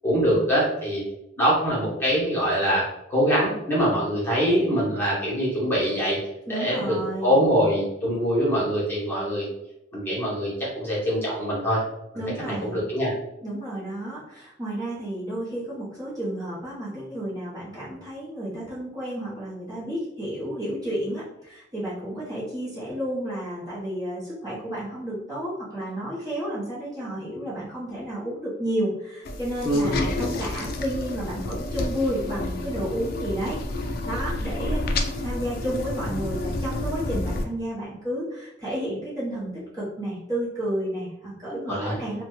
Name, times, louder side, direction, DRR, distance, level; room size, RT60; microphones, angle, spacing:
voice 1, 0.0-1.1 1.4-6.2 6.5-9.5 9.9-11.8 12.5-13.1 29.6-30.0 41.4-41.9, equal, 10° left, -7 dB, 1.0 m, -24 dB
voice 2, 6.5-7.4 12.1-12.8 13.4-42.2, right 1 dB, 20° right, -9 dB, 0.9 m, -31 dB
sound 1, 29.3-37.4, left 2 dB, 50° left, 0.3 m, -30 dB
2.8 x 2.2 x 3.0 m, 0.86 s
head